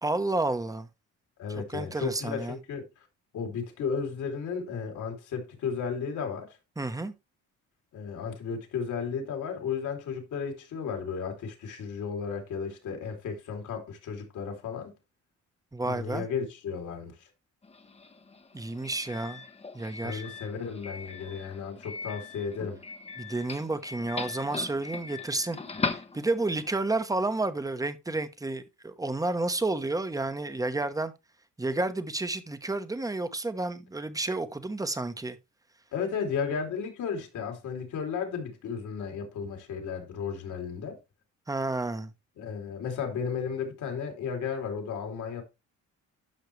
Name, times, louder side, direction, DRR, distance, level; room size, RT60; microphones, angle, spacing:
voice 1, 0.0-0.9 1.5-2.6 6.8-7.1 15.7-16.2 18.5-19.4 19.7-20.2 23.2-25.6 25.9-31.1 31.6-35.4 41.5-42.1, right 2 dB, 10° right, 1.1 m, -31 dB
voice 2, 1.4-2.9 3.3-6.6 7.9-14.9 15.8-17.3 20.0-22.8 35.9-41.0 42.4-45.4, left 6 dB, 75° left, 3.0 m, -34 dB
Doorbell, 17.6-26.7, left 4 dB, 20° left, 0.9 m, -39 dB
12.0 x 5.8 x 3.3 m
cardioid pair, 90°, 30 cm